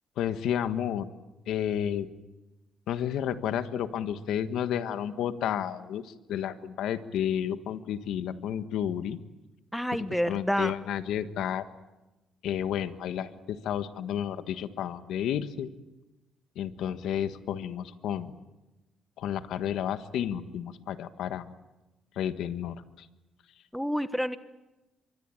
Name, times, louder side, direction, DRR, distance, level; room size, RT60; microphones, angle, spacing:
voice 1, 0.2-1.1 1.5-2.1 2.9-9.2 10.3-11.6 12.4-15.7 16.5-18.3 19.2-21.5 22.1-23.1, left 9 dB, 85° left, 10 dB, 1.5 m, -31 dB
voice 2, 9.7-10.8 23.7-24.4, equal, ahead, 11 dB, 1.3 m, -28 dB
26.0 x 23.5 x 9.0 m, 1.1 s
cardioid pair, 90°, 0 cm